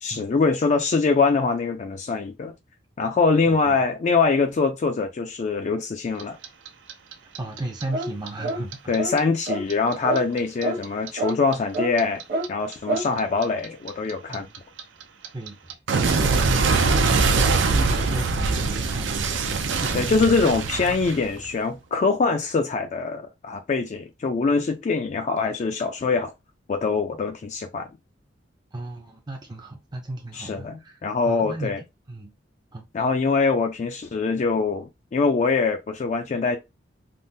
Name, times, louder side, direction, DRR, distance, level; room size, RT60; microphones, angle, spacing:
voice 1, 0.0-2.5 3.0-6.4 8.9-12.2 12.5-14.5 19.9-26.3 26.7-27.9 30.3-31.8 32.9-36.6, left 4 dB, 40° left, 0.3 m, -23 dB
Clock, 6.2-9.2 9.5-12.5 12.7-21.6, right 4 dB, 85° right, 0.5 m, -23 dB
voice 2, 7.4-9.0 12.9-13.1 14.3-14.6 15.3-15.8 16.0-20.4 28.7-31.0 31.3-31.7 32.1-32.3 32.7-32.9, right 2 dB, 25° right, 0.4 m, -34 dB
sound 1, 7.9-8.1 8.4-8.6 9.0-9.2 9.5-9.6 10.0-10.2 10.6-10.8 11.2-11.3 11.7-11.9 12.3-12.5 12.9-13.1, right 2 dB, 50° right, 1.0 m, -26 dB
3.5 x 2.0 x 2.6 m
head